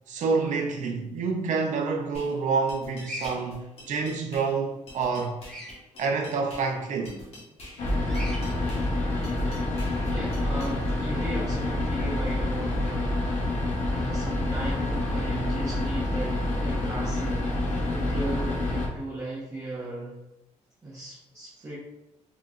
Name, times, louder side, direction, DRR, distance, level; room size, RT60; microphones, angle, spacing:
voice 1, 0.1-5.4 6.0-7.2, right 4 dB, 80° right, 0.6 m, -28 dB
sound 1, 2.1-10.7, left 1 dB, 50° left, 1.3 m, -47 dB
Bird vocalization bird call bird song, 3.0-3.3 5.4-5.7 8.1-8.4, left 1 dB, 5° left, 0.9 m, -38 dB
sound 2, 7.8-18.9, left 1 dB, 75° left, 0.8 m, -27 dB
voice 2, 10.1-13.4 13.9-17.5 17.9-20.2 20.8-21.8, right 1 dB, 25° right, 0.9 m, -36 dB
4.0 x 3.0 x 2.4 m
wide cardioid pair, 140°, 13 cm